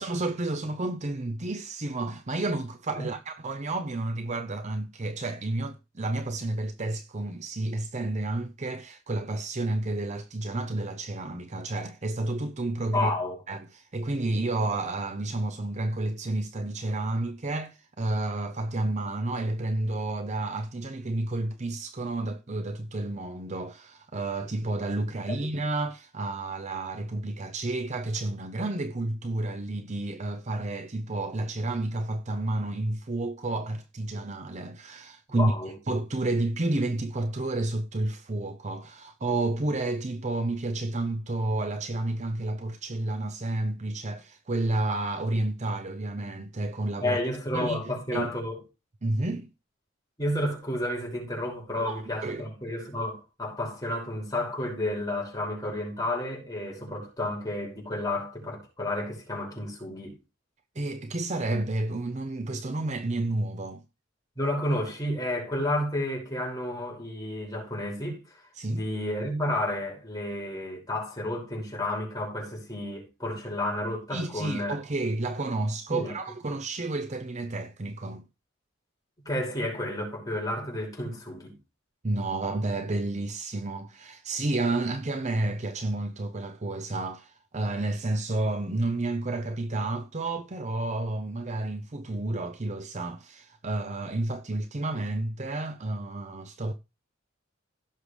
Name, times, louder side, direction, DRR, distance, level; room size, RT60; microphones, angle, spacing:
voice 1, 0.0-13.1 13.5-47.2 47.5-47.8 48.1-48.3 49.0-49.5 51.7-52.4 60.8-63.8 68.6-68.9 74.1-78.2 82.0-96.7, right 2 dB, 35° right, 0.6 m, -30 dB
voice 2, 12.9-13.4 25.3-25.5 35.3-35.7 47.0-48.6 50.2-60.2 64.4-68.2 68.7-74.8 75.9-76.1 79.3-81.6, left 1 dB, 20° left, 5.5 m, -31 dB
16.5 x 6.7 x 3.3 m
head